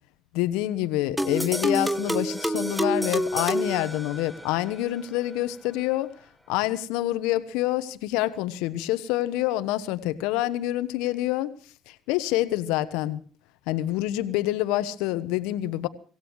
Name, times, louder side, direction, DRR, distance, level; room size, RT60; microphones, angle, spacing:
voice 1, 0.3-6.1 6.5-11.5 12.1-13.2 13.7-15.9, left 15 dB, 70° left, 13 dB, 1.1 m, -27 dB
sound 1, 1.2-4.6, equal, 5° right, 0.9 m, -28 dB
26.0 x 16.5 x 3.1 m, 0.42 s
hypercardioid pair, 50°, 0 cm